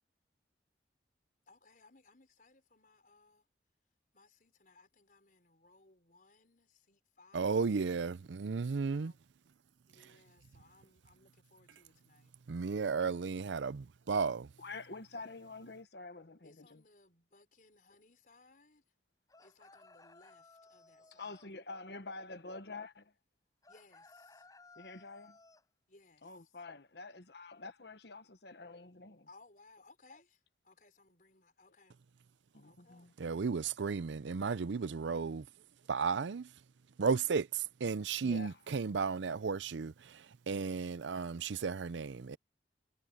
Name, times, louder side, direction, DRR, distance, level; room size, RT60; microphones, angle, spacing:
voice 1, 1.5-3.5 4.1-7.7 8.9-9.2 9.9-12.3 16.4-18.8 19.4-21.4 23.7-24.5 25.9-26.6 29.3-32.0 32.6-33.2, left 3 dB, 45° left, 5.4 m, -64 dB
voice 2, 7.3-9.1 12.5-14.5 33.2-35.5 35.9-36.5 37.0-42.4, right 5 dB, 80° right, 0.5 m, -34 dB
voice 3, 14.6-16.8 21.1-23.1 24.8-25.4 26.2-29.3 32.5-33.1 38.2-38.6, left 3 dB, 65° left, 1.3 m, -47 dB
sound 1, 19.3-21.5 23.6-25.7, left 3 dB, 20° left, 5.5 m, -60 dB
head